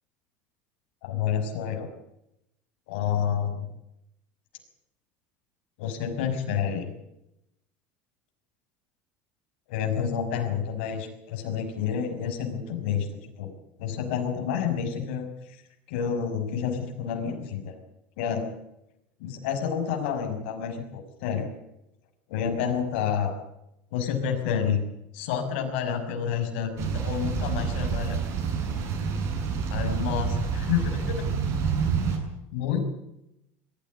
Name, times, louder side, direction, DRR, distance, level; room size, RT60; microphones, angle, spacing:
voice 1, 1.0-1.9 2.9-3.7 5.8-6.9 9.7-13.5 13.8-15.6 15.9-17.7 18.2-18.5 19.2-21.5 22.3-23.3 23.9-24.8 25.1-28.2 29.7-31.3 32.5-32.8, left 8 dB, 80° left, 4 dB, 6.0 m, -29 dB
sound 1, 26.8-32.2, right 6 dB, 50° right, 7.9 m, -28 dB
22.0 x 15.0 x 9.7 m, 0.86 s
supercardioid pair, 125°, 6 cm